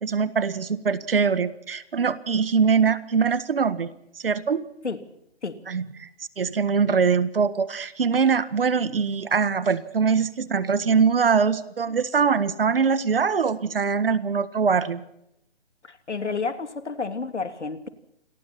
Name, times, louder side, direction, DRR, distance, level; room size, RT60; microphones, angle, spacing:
voice 1, 0.0-3.9 4.2-4.6 5.7-6.1 6.4-15.0, right 5 dB, 55° right, 14 dB, 1.6 m, -22 dB
voice 2, 15.8-17.9, left 4 dB, 85° left, 8 dB, 2.9 m, -30 dB
28.0 x 22.5 x 4.3 m, 0.78 s
hypercardioid pair, 160°, 34 cm